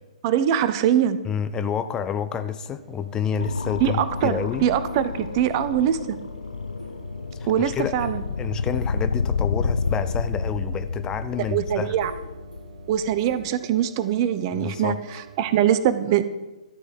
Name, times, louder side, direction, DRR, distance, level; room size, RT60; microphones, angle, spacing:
voice 1, 0.2-1.2 3.8-6.2 7.5-8.2 11.5-12.1 12.9-16.2, right 10 dB, 35° right, 13 dB, 0.7 m, -23 dB
voice 2, 1.2-4.6 7.4-8.1 8.4-12.0 14.5-15.0, left 7 dB, 15° left, 11 dB, 0.5 m, -29 dB
sound 1, 2.7-15.7, right 3 dB, 70° right, 2.9 m, -46 dB
sound 2, 3.4-13.5, left 5 dB, 75° left, 0.4 m, -30 dB
13.0 x 4.8 x 7.5 m, 1.1 s
figure-of-eight pair, 120°, 4 cm